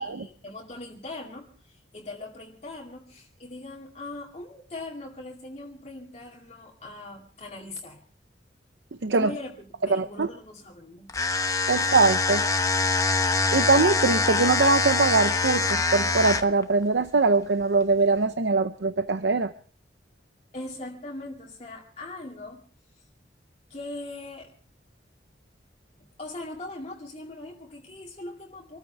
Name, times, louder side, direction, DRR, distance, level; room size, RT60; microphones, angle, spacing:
voice 1, 0.0-8.0 9.1-11.2 20.5-22.7 23.7-24.5 26.0-28.8, left 2 dB, 35° left, -1 dB, 2.3 m, -40 dB
voice 2, 9.9-10.3 11.7-12.4 13.5-19.5, right 3 dB, 85° right, 10 dB, 0.7 m, -22 dB
sound 1, 11.1-16.6, left 3 dB, 20° left, 0.8 m, -24 dB
27.0 x 14.5 x 3.3 m, 0.42 s
head